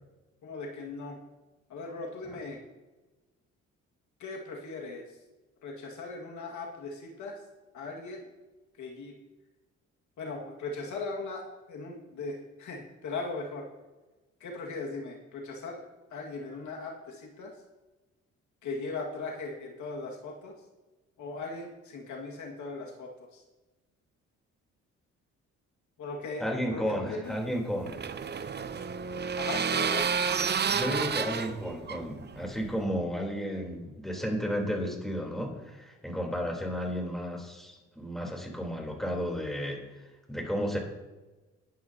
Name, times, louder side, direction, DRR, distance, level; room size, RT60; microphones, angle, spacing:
voice 1, 0.4-1.2 1.7-2.6 4.2-5.2 5.6-7.4 7.7-8.2 8.8-9.2 10.2-13.7 14.4-15.8 16.1-17.5 18.6-20.5 21.2-23.4 26.0-27.4 29.3-30.1, left 3 dB, 75° left, 0 dB, 2.0 m, -38 dB
voice 2, 26.4-28.0 30.7-39.8 40.3-40.8, equal, ahead, 0 dB, 3.6 m, -33 dB
sound 1, 27.3-32.8, right 6 dB, 35° right, 0.7 m, -31 dB
20.5 x 9.3 x 2.9 m, 1.2 s
cardioid pair, 90°, 30 cm